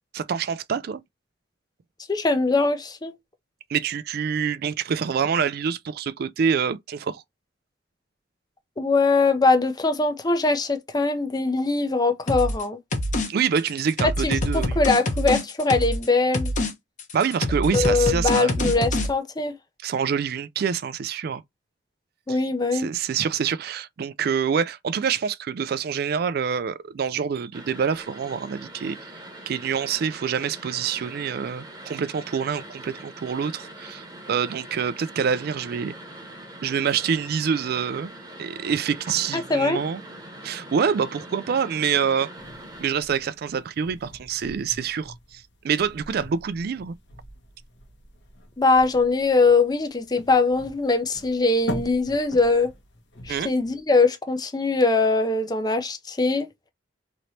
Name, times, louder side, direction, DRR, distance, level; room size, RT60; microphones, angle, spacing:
voice 1, 0.1-1.0 3.7-7.2 13.3-14.8 17.1-18.7 19.8-21.4 22.3-22.4 22.7-29.1 29.5-35.9 36.6-38.1 38.4-40.0 40.4-42.3 42.8-46.9 53.3-53.5, right 7 dB, 55° right, 0.3 m, -26 dB
voice 2, 2.1-3.1 8.8-12.8 14.2-16.5 17.7-19.5 22.3-22.9 39.3-39.8 48.6-52.7 53.2-56.5, left 3 dB, 20° left, 0.5 m, -22 dB
sound 1, 12.3-12.6 12.9-13.3 13.6-16.1 16.3-16.7 17.0-19.1, left 1 dB, 45° left, 0.9 m, -25 dB
sound 2, 27.5-42.9, right 1 dB, 25° right, 1.0 m, -42 dB
sound 3, 42.4-53.8, left 1 dB, 70° left, 1.1 m, -42 dB
3.1 x 2.9 x 2.7 m
head